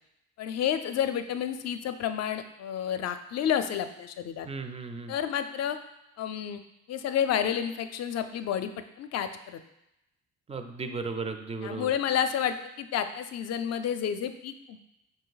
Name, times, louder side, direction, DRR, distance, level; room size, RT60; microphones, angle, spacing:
voice 1, 0.4-4.5 5.1-5.8 6.2-6.6 6.9-8.7 9.0-9.6 11.6-14.8, left 9 dB, 60° left, 9 dB, 0.4 m, -30 dB
voice 2, 4.5-5.2 10.5-11.9, right 4 dB, 20° right, 7 dB, 0.4 m, -35 dB
5.1 x 2.7 x 3.9 m, 0.87 s
cardioid pair, 90°, 30 cm